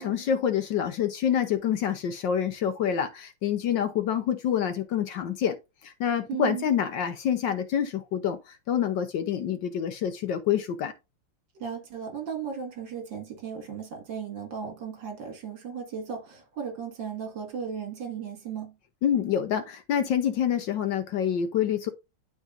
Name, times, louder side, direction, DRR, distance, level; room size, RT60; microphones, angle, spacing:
voice 1, 0.0-5.6 5.8-10.9 19.0-21.9, left 9 dB, 65° left, 1.3 m, -27 dB
voice 2, 6.3-6.7 11.5-18.7, right 7 dB, 60° right, 2.4 m, -36 dB
12.0 x 4.0 x 2.5 m
omnidirectional pair, 2.3 m